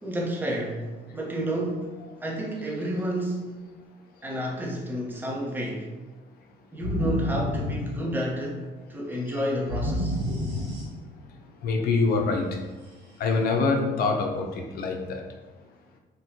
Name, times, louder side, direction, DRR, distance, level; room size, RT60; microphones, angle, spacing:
voice 1, 0.0-3.6 4.2-5.9 6.7-10.2, equal, 10° right, -2 dB, 0.7 m, -30 dB
sound 1, 6.8-8.5 9.7-11.3, equal, 85° right, 1.1 m, -30 dB
voice 2, 11.6-12.6 13.2-15.2, left 4 dB, 65° left, 3 dB, 0.6 m, -25 dB
4.0 x 2.2 x 2.7 m, 1.2 s
cardioid pair, 110°, 17 cm